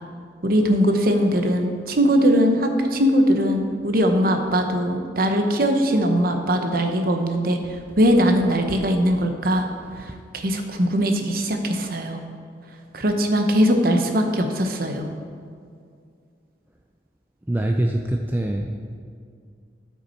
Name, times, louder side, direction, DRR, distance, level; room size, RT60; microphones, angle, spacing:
voice 1, 0.4-9.7 10.0-12.2 12.9-15.1, equal, 50° right, 5 dB, 0.9 m, -20 dB
voice 2, 17.5-18.7, right 1 dB, 10° right, 2 dB, 0.4 m, -24 dB
12.5 x 5.9 x 4.4 m, 2.3 s
head